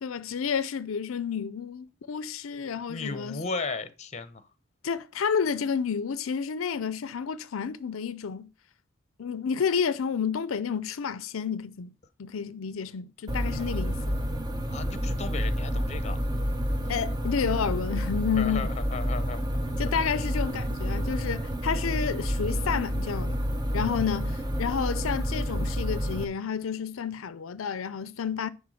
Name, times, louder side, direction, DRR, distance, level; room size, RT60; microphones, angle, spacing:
voice 1, 0.0-3.4 4.8-8.5 9.2-11.9 12.2-14.2 16.9-18.7 19.8-23.4 23.7-28.5, left 6 dB, 80° left, 0.5 m, -30 dB
voice 2, 2.9-4.5 13.6-13.7 14.7-16.2 18.3-19.4, left 4 dB, 35° left, 0.8 m, -35 dB
sound 1, 13.3-26.2, equal, 20° right, 0.8 m, -29 dB
10.5 x 3.5 x 6.3 m
head